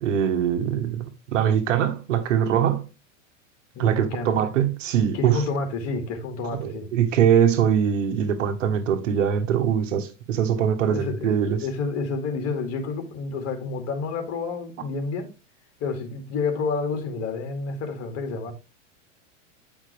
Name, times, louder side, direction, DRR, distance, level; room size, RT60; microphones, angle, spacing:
voice 1, 0.0-2.9 3.8-5.4 6.6-11.6, right 8 dB, 80° right, 1.5 m, -22 dB
voice 2, 3.7-4.4 5.1-6.9 10.9-15.3 15.8-18.5, left 4 dB, 40° left, 2.3 m, -29 dB
9.0 x 5.8 x 3.4 m
supercardioid pair, 125°, 37 cm